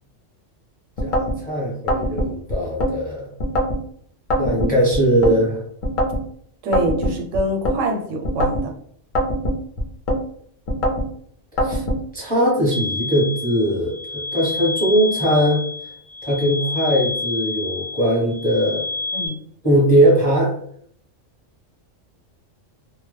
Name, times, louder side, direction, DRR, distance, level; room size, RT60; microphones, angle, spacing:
sound 1, 1.0-1.4 1.9-2.9 3.4-3.8 4.3-5.4 5.8-6.2 6.7-7.8 8.2-8.7 9.1-10.2 10.7-11.1 11.6-12.0, equal, 55° left, 0.5 m, -22 dB
voice 1, 1.0-3.3 4.4-5.6 11.5-11.8 12.1-15.6 16.2-18.8 19.6-20.5, right 1 dB, 10° left, -5 dB, 0.7 m, -20 dB
voice 2, 6.6-8.7 19.1-19.4, right 1 dB, 85° right, 3 dB, 0.9 m, -24 dB
sound 2, 12.7-19.3, left 3 dB, 55° right, 0.5 m, -29 dB
2.1 x 2.0 x 3.1 m, 0.64 s
omnidirectional pair, 1.3 m